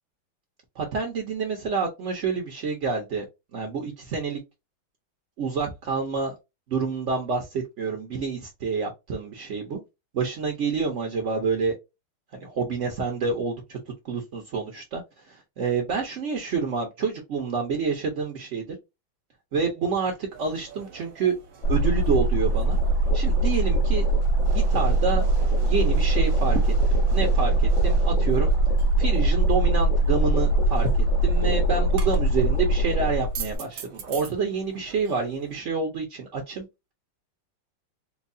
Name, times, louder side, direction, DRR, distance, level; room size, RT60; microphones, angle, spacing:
voice 1, 0.8-3.3 3.5-4.4 5.4-6.3 6.7-9.8 10.1-11.8 12.3-13.8 14.0-15.0 15.3-18.8 19.5-21.3 21.7-22.8 23.1-24.0 24.4-25.2 25.6-28.5 29.0-30.9 31.2-36.6, right 5 dB, 55° right, 0.8 m, -28 dB
sound 1, 20.3-35.6, right 7 dB, 75° right, 1.6 m, -43 dB
sound 2, 21.6-33.6, right 2 dB, 70° left, 2.3 m, -22 dB
4.5 x 2.3 x 2.6 m
omnidirectional pair, 2.2 m